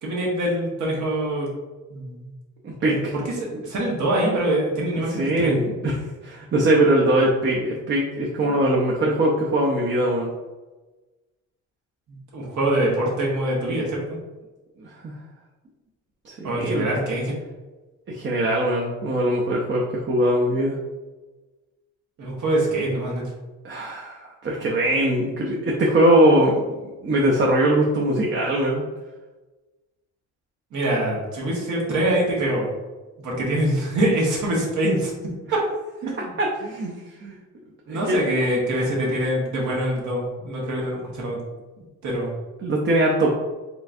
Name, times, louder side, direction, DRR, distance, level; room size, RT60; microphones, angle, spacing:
voice 1, 0.0-1.5 1.9-2.3 2.8-5.5 12.1-14.2 16.4-17.3 22.2-23.2 30.7-32.7 33.2-35.1 36.0-36.3 37.9-41.4 41.8-42.3, right 1 dB, 75° right, -3 dB, 1.5 m, -24 dB
voice 2, 2.6-3.1 3.5-3.6 5.2-5.9 6.2-10.3 14.8-15.1 16.2-16.9 18.1-20.8 23.6-26.6 27.0-28.8 36.4-36.9 37.2-37.4 37.9-38.2 38.7-39.0 42.6-43.3, right 1 dB, 40° right, -2 dB, 0.7 m, -21 dB
4.4 x 3.4 x 2.6 m, 1.2 s
cardioid pair, 120°, 30 cm